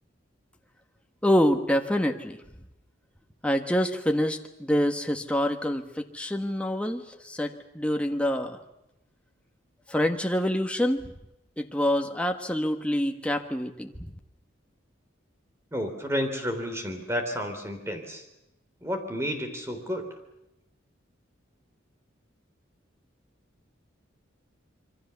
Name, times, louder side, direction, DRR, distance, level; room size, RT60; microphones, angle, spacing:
voice 1, 1.2-2.4 3.4-8.6 9.9-11.1 11.6-13.9, equal, 5° left, 4 dB, 1.4 m, -26 dB
voice 2, 15.7-18.2 18.8-20.1, equal, 15° right, 5 dB, 3.4 m, -31 dB
26.5 x 24.0 x 7.0 m, 0.89 s
head